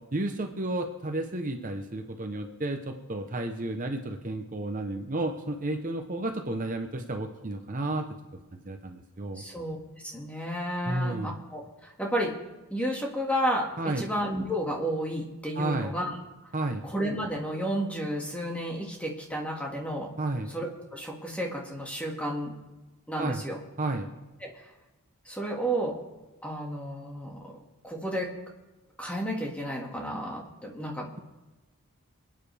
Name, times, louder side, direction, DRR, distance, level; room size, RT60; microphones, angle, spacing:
voice 1, 0.1-8.1 8.7-9.4 10.9-11.3 13.8-14.1 15.5-15.9 16.5-16.8 20.2-20.5 23.2-23.4 23.8-24.1, right 2 dB, 35° right, 4 dB, 0.9 m, -32 dB
voice 2, 9.4-9.8 10.0-12.4 12.7-16.2 16.8-20.1 20.5-22.5 23.1-23.6 24.4-24.7 25.3-26.0 26.4-28.3 29.0-31.1, equal, 5° left, -1 dB, 1.9 m, -32 dB
26.5 x 9.4 x 3.4 m, 1.1 s
head